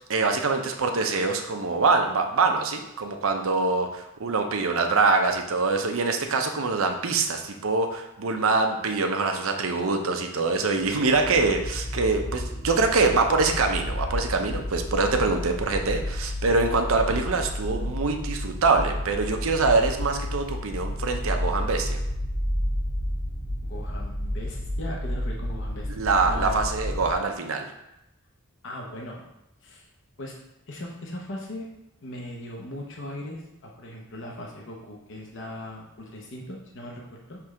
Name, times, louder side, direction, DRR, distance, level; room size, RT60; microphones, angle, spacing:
voice 1, 0.1-22.0 25.9-27.7, right 3 dB, 70° right, 4 dB, 0.7 m, -24 dB
sound 1, 10.8-27.1, left 1 dB, 40° left, 1.2 m, -31 dB
voice 2, 23.6-26.7 28.6-29.2 29.6-29.9 30.2-30.4 30.7-31.7 32.0-37.4, left 1 dB, 65° left, -1 dB, 0.9 m, -39 dB
6.0 x 3.3 x 4.8 m, 0.89 s
head